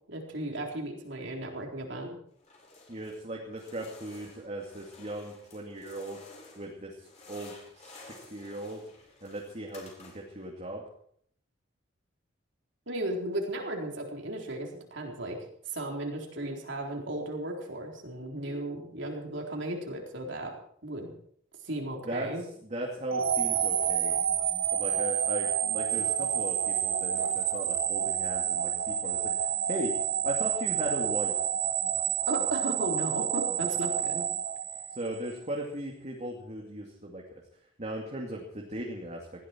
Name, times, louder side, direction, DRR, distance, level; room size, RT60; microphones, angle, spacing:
voice 1, 0.1-2.1 12.9-15.4 15.7-20.5 20.8-21.1 21.6-22.4 32.3-34.2, right 1 dB, 65° right, 1 dB, 4.1 m, -35 dB
sound 1, 2.4-3.2 3.5-6.7 7.0-10.4, left 3 dB, 35° left, 5.5 m, -52 dB
voice 2, 2.9-6.2 6.6-6.9 7.3-8.8 9.2-10.8 22.1-22.3 22.6-24.2 24.7-29.3 29.7-29.9 30.2-31.3 35.0-37.2 37.8-39.3, right 1 dB, 35° right, -1 dB, 2.5 m, -37 dB
sound 2, 23.1-35.3, right 9 dB, 85° right, 1.9 m, -29 dB
20.0 x 15.0 x 4.6 m, 0.64 s
head